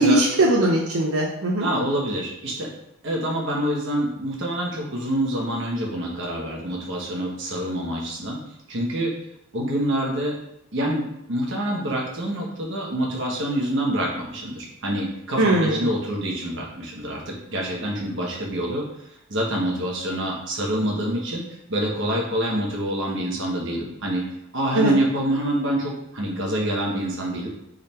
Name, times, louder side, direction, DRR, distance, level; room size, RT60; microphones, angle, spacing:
voice 1, 0.0-1.7 15.4-15.9 24.7-24.9, right 1 dB, 85° right, -2 dB, 0.6 m, -20 dB
voice 2, 1.6-2.7 3.0-8.4 8.7-9.1 9.5-10.4 10.7-18.8 19.3-21.4 21.7-24.2 24.5-27.5, right 1 dB, 60° right, -1 dB, 1.1 m, -26 dB
3.8 x 3.3 x 4.2 m, 0.78 s
head